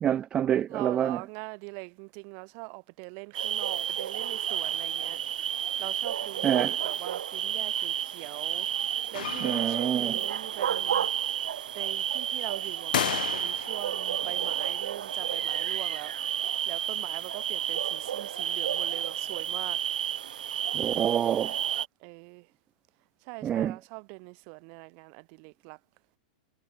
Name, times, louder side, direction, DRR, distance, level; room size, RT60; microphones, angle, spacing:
voice 1, 0.0-1.2 6.4-6.8 9.4-10.2 20.7-21.5 23.4-23.8, right 10 dB, 20° right, 0.5 m, -27 dB
voice 2, 0.7-5.2 5.8-11.1 11.7-19.8 22.0-22.5 23.2-25.8, right 40 dB or more, 40° right, 3.5 m, -42 dB
sound 1, 3.3-21.9, right 10 dB, 80° right, 1.3 m, -31 dB
sound 2, 9.1-10.1 12.9-13.9, left 11 dB, 75° left, 3.5 m, -32 dB
Piano, 9.2-11.2 11.8-12.6 12.9-13.0 13.2-13.3, left 15 dB, 60° left, 5.3 m, -47 dB
hypercardioid pair, 150°, 5 cm